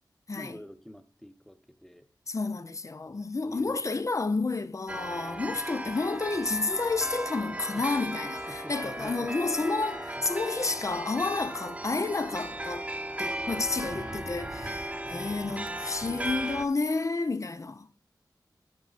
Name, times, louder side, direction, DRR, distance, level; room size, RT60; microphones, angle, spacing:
voice 1, 0.3-2.1 3.0-3.8 7.7-9.3 9.6-9.7 10.1-10.2 13.9-14.1 15.0-16.6, equal, 5° left, 1.1 m, -47 dB
voice 2, 2.3-12.9 13.2-17.9, left 3 dB, 45° left, 0.6 m, -30 dB
sound 1, 4.9-16.7, right 1 dB, 15° right, 0.9 m, -36 dB
sound 2, 5.2-6.9 8.2-11.6 12.3-17.3, left 2 dB, 65° left, 1.5 m, -52 dB
11.5 x 6.1 x 4.1 m
wide cardioid pair, 60°, 8 cm